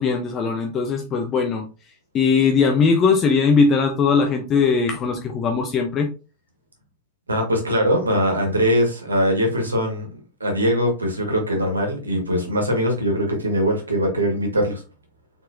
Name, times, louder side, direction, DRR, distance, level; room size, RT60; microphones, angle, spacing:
voice 1, 0.0-1.6 2.1-6.1, left 5 dB, 30° left, 3 dB, 0.7 m, -19 dB
voice 2, 7.3-10.1 10.4-14.8, equal, 75° right, 2 dB, 1.5 m, -21 dB
4.3 x 4.0 x 2.7 m, 0.32 s
figure-of-eight pair, 90°, 0 cm